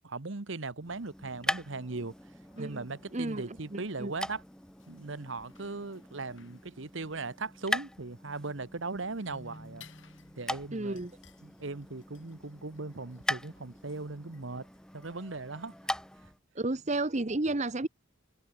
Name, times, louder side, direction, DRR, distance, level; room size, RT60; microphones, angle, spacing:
voice 1, 0.0-2.1 2.6-4.4 4.9-9.8 10.4-11.0 11.4-14.7 14.9-15.7, right 3 dB, 65° right, 1.2 m, -38 dB
sound 1, 0.8-16.4, left 1 dB, 5° left, 1.1 m, -41 dB
sound 2, 1.9-15.9, left 8 dB, 60° left, 5.3 m, -64 dB
voice 2, 3.1-4.1 10.7-11.1 16.6-17.9, right 2 dB, 35° right, 0.9 m, -32 dB
Keyboard (musical), 9.3-11.1, equal, 30° left, 2.4 m, -53 dB
head